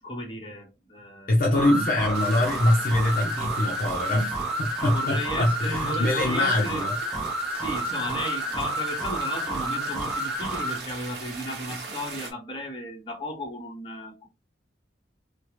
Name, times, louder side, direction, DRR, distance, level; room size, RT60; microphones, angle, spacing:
voice 1, 0.0-1.4 4.9-6.9 7.5-14.3, left 1 dB, 30° left, 1.0 m, -35 dB
voice 2, 1.3-7.0, left 1 dB, 50° left, 0.6 m, -24 dB
sound 1, 1.5-10.8, right 1 dB, 5° right, 0.6 m, -30 dB
sound 2, 2.1-12.3, right 4 dB, 60° right, 0.8 m, -41 dB
3.2 x 2.0 x 2.9 m
head